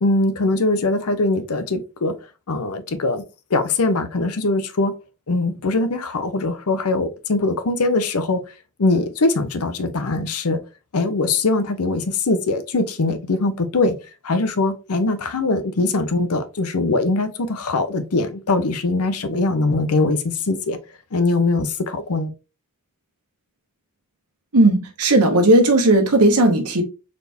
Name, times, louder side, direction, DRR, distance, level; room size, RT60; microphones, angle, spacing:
voice 1, 0.0-2.2 2.5-3.2 3.5-4.9 5.3-8.4 8.8-10.6 10.9-14.0 14.2-20.8 21.1-22.3, left 2 dB, 75° left, 0.7 m, -21 dB
voice 2, 24.5-26.8, right 1 dB, 80° right, 1.1 m, -15 dB
4.1 x 3.4 x 2.6 m
head